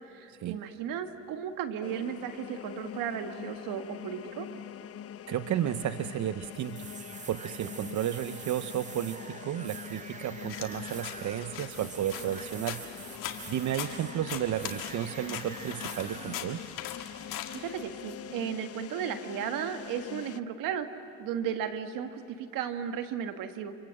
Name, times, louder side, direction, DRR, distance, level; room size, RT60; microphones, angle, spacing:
voice 1, 0.1-4.5 17.5-20.9 21.2-23.8, right 8 dB, 75° right, 8 dB, 1.6 m, -35 dB
sound 1, 1.8-20.4, left 9 dB, 45° left, 0.7 m, -44 dB
voice 2, 5.3-6.9 7.3-12.9 13.5-16.6, right 11 dB, 55° right, 11 dB, 0.8 m, -33 dB
sound 2, 6.5-16.4, right 5 dB, 20° right, 0.7 m, -46 dB
sound 3, 10.5-18.2, left 10 dB, 75° left, 2.0 m, -41 dB
26.0 x 25.5 x 7.7 m, 2.9 s
supercardioid pair, 70°, 33 cm